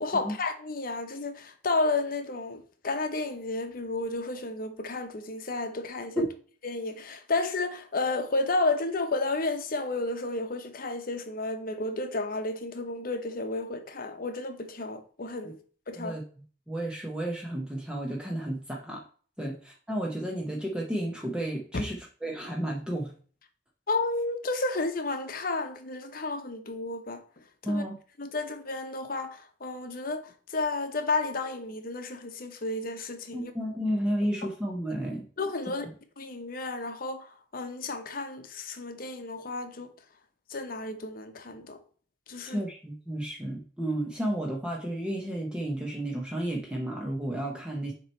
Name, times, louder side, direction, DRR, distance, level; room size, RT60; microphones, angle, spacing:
voice 1, 0.0-6.3 6.6-15.5 15.9-16.2 19.4-19.5 21.7-21.8 23.9-27.2 27.7-27.8 28.2-33.5 35.4-35.9 36.2-39.9 40.5-41.8 42.3-42.6, left 3 dB, 50° left, 0.8 m, -32 dB
voice 2, 16.7-19.0 19.4-23.1 27.6-28.0 33.3-35.2 42.4-47.9, right 1 dB, 5° right, 0.8 m, -32 dB
7.2 x 3.1 x 4.3 m
head